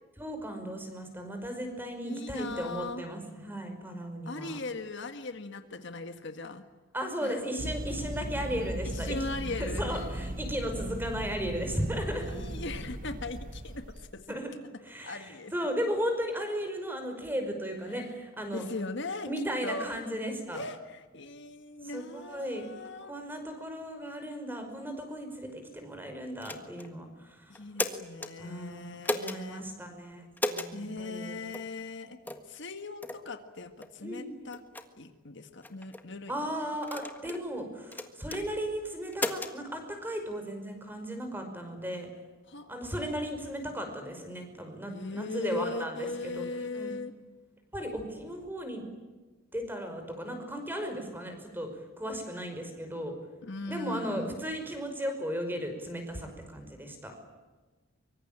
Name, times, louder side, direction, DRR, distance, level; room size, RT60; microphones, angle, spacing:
voice 1, 0.2-4.6 6.9-9.3 9.6-12.3 14.3-14.5 14.8-18.6 19.3-20.6 21.8-22.6 23.1-27.6 28.4-31.4 34.0-34.4 36.3-42.1 42.7-47.0 47.7-48.8 49.5-51.7 52.0-53.2 53.7-57.3, equal, 10° right, 6 dB, 5.4 m, -36 dB
voice 2, 2.0-3.0 4.3-6.6 7.2-7.4 8.8-10.1 12.1-14.3 15.0-15.5 18.5-19.3 19.6-19.9 20.5-23.1 27.5-29.6 30.7-32.2 32.4-34.6 35.0-36.5 42.5-42.9 44.9-47.1 53.4-54.4, left 3 dB, 55° left, 8 dB, 1.7 m, -39 dB
sound 1, 7.6-14.2, right 1 dB, 40° right, 1.1 m, -37 dB
sound 2, 26.4-26.9 27.5-28.3 29.0-29.4 30.4-30.7 31.5-31.7 32.3-32.5 33.0-33.2 33.8-33.9 34.5-34.9 35.6-36.0 36.8-37.4 37.9-38.4 39.1-39.5, left 2 dB, 10° left, 1.6 m, -34 dB
24.5 x 24.5 x 8.9 m, 1.2 s
head